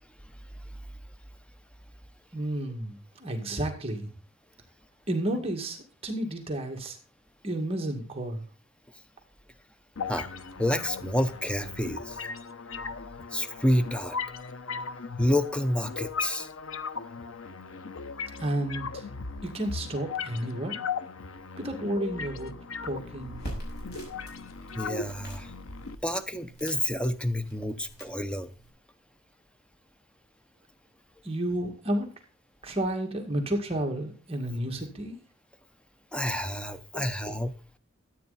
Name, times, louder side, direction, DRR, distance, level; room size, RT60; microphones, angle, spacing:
voice 1, 2.3-4.1 5.1-7.0 7.4-8.4 18.4-19.1 19.4-20.8 21.6-22.5 22.8-23.4 31.2-32.1 32.6-35.2 36.9-37.1, right 1 dB, 30° right, 2.1 m, -31 dB
sound 1, 10.0-26.0, left 5 dB, 75° left, 0.9 m, -38 dB
voice 2, 10.6-12.2 13.3-14.2 15.2-16.5 24.8-25.5 26.0-28.5 36.1-37.5, left 1 dB, 5° left, 0.7 m, -29 dB
sound 2, 23.2-28.7, equal, 50° left, 6.1 m, -44 dB
13.5 x 9.1 x 4.2 m
head